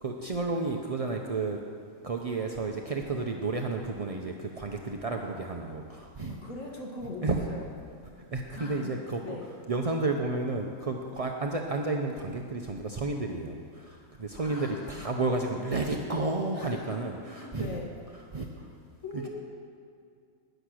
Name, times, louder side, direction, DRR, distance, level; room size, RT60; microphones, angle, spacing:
voice 1, 0.0-1.6 2.0-6.4 7.2-7.4 8.3-9.4 9.7-17.8 18.3-18.7 19.1-19.3, right 3 dB, 45° right, 2 dB, 0.4 m, -32 dB
voice 2, 6.1-7.6 8.6-8.9 9.2-9.5 13.8-15.0 16.5-17.9 19.0-19.3, left 2 dB, 60° left, -1 dB, 1.7 m, -41 dB
11.5 x 10.0 x 6.3 m, 2.4 s
omnidirectional pair, 1.6 m